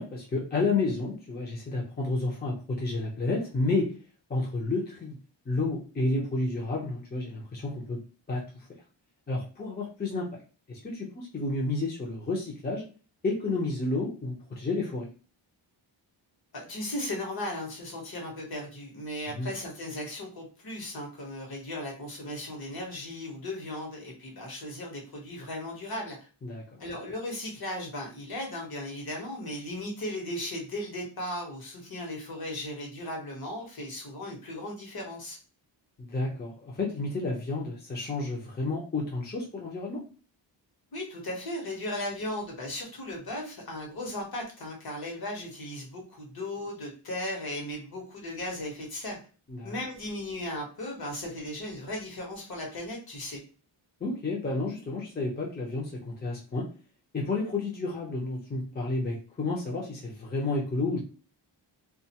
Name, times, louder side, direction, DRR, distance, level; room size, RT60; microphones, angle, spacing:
voice 1, 0.0-3.9 4.3-5.2 5.5-8.0 8.3-8.6 9.3-10.3 10.7-12.8 13.2-15.1 19.3-19.5 26.4-26.8 36.0-40.0 49.5-49.8 54.0-56.7 57.1-61.0, left 3 dB, 20° left, -3 dB, 0.6 m, -31 dB
voice 2, 16.5-26.2 26.8-35.4 40.9-49.2 49.6-53.4, left 1 dB, 50° left, 0 dB, 1.1 m, -36 dB
2.4 x 2.4 x 2.8 m, 0.36 s
wide cardioid pair, 135°, 46 cm